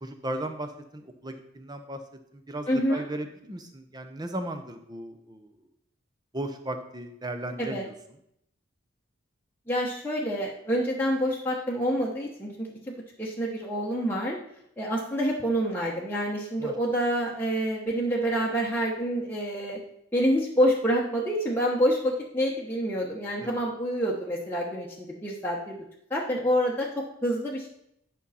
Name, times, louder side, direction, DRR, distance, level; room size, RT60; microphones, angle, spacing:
voice 1, 0.0-2.0 2.3-5.5 6.3-7.9 16.6-16.7 23.4-23.6, right 1 dB, 20° right, 7 dB, 0.8 m, -36 dB
voice 2, 2.7-3.0 7.6-7.8 9.7-14.4 14.8-19.8 20.1-25.8 26.1-27.7, equal, 10° left, -4 dB, 1.0 m, -27 dB
10.0 x 5.5 x 4.2 m, 0.75 s
head